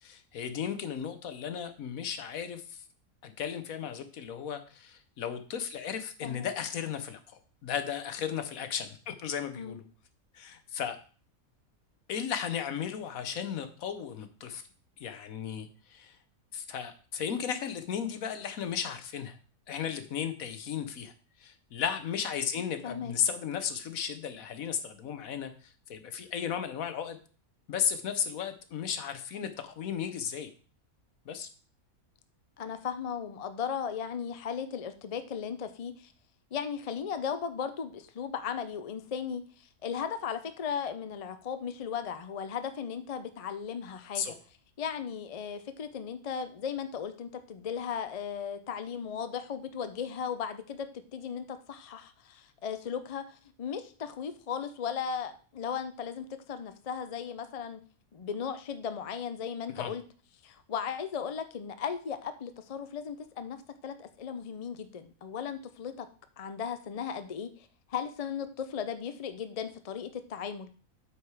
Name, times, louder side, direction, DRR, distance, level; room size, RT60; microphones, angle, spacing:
voice 1, 0.0-2.8 3.2-9.8 10.3-11.0 12.1-14.6 15.0-16.2 16.5-19.4 19.7-21.1 21.4-27.2 27.7-30.5 31.3-31.5 44.1-44.3 59.7-59.9, left 8 dB, 70° left, 10 dB, 1.3 m, -35 dB
voice 2, 22.8-23.1 32.6-36.1 36.5-44.4 44.8-57.8 58.1-60.0 60.4-63.6 63.8-66.1 66.4-70.7, left 7 dB, 55° left, 10 dB, 0.4 m, -36 dB
8.5 x 4.7 x 4.8 m, 0.39 s
omnidirectional pair, 1.5 m